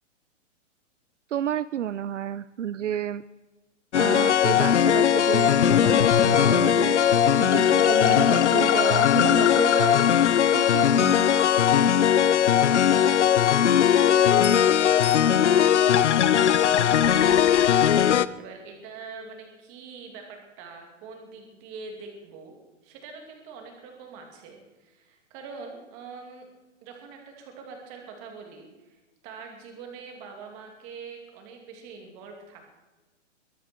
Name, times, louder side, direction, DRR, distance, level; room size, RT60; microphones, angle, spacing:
voice 1, 1.3-3.2 4.0-7.1 7.4-11.3, right 10 dB, 70° right, 17 dB, 0.7 m, -31 dB
sound 1, 3.9-18.3, left 9 dB, 65° left, 0.8 m, -19 dB
voice 2, 13.2-22.6 22.8-26.5 26.8-32.8, right 5 dB, 20° right, 3 dB, 2.7 m, -44 dB
22.5 x 12.0 x 4.5 m, 1.1 s
hypercardioid pair, 170°, 37 cm